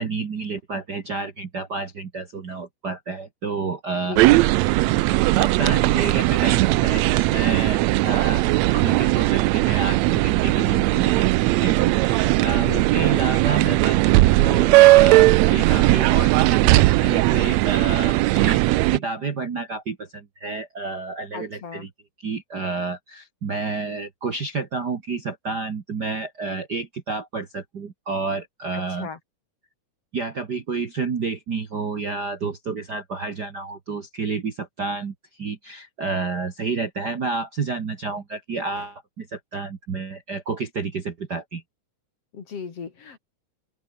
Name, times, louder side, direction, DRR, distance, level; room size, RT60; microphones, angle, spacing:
voice 1, 0.0-4.2 5.3-11.3 11.6-21.9 22.2-29.1 30.1-41.6, right 4 dB, 40° right, 1.7 m, -30 dB
voice 2, 4.1-4.5 12.6-13.1 21.3-21.9 28.7-29.2 42.3-43.2, left 6 dB, 50° left, 3.4 m, -36 dB
sound 1, 4.2-19.0, right 19 dB, 85° right, 1.5 m, -18 dB
omnidirectional pair, 3.8 m